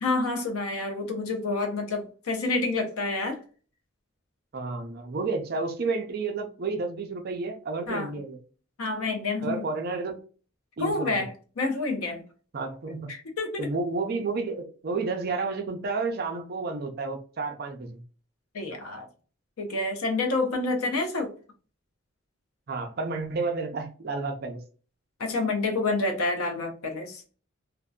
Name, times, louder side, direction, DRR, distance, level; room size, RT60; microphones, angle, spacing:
voice 1, 0.0-3.4 7.9-8.2 8.8-9.7 10.8-12.2 13.1-13.7 18.5-19.1 19.6-21.3 25.2-27.2, left 3 dB, 90° left, 0.6 m, -28 dB
voice 2, 4.5-8.4 9.4-10.2 10.8-11.1 12.5-13.1 13.6-18.0 22.7-24.6, right 3 dB, 45° right, 0.4 m, -31 dB
2.6 x 2.1 x 2.2 m
head